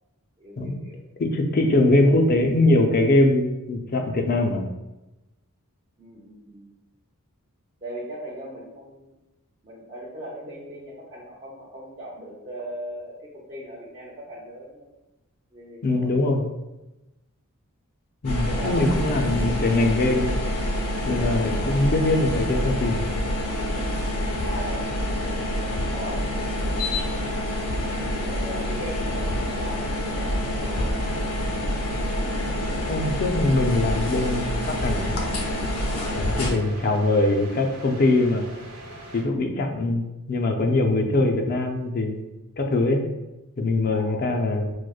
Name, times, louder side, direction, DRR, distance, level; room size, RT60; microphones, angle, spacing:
voice 1, 0.4-1.0 1.6-2.3 6.0-6.7 7.8-9.2 9.6-14.9 15.5-16.5 18.4-19.9 24.4-24.9 25.9-26.3 28.2-31.0 36.2-36.5 37.1-37.2 43.9-44.4, equal, 30° right, -7 dB, 0.5 m, -39 dB
voice 2, 1.2-4.7 15.8-16.4 18.2-20.3 21.0-23.1 32.9-35.2 36.1-38.5 39.1-42.2 42.6-43.0 43.6-44.7, left 2 dB, 40° left, 3 dB, 0.4 m, -22 dB
sound 1, 18.2-36.5, left 1 dB, 90° left, 0.6 m, -27 dB
sound 2, 33.7-39.2, right 2 dB, 85° right, 1.1 m, -42 dB
4.7 x 2.1 x 2.3 m, 0.99 s
head